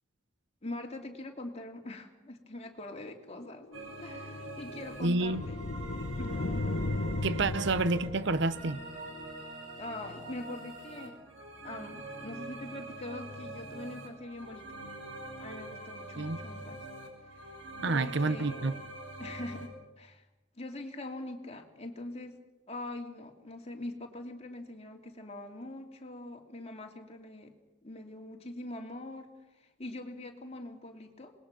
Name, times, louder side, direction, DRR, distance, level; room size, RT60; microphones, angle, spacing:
voice 1, 0.6-3.7 4.0-5.6 6.2-6.5 7.4-7.6 9.8-11.2 11.6-14.7 15.4-16.8 17.2-17.6 17.9-18.8 19.2-20.3 20.6-22.4 22.7-27.5 27.8-31.3, left 2 dB, 35° left, 2.7 m, -43 dB
sound 1, 3.5-9.1, left 2 dB, 90° left, 1.1 m, -36 dB
sound 2, 3.7-19.7, right 2 dB, 80° right, 5.8 m, -44 dB
voice 2, 5.0-5.4 7.2-8.8 16.2-16.4 17.8-18.7, right 3 dB, 65° right, 0.8 m, -29 dB
27.0 x 20.5 x 6.0 m
head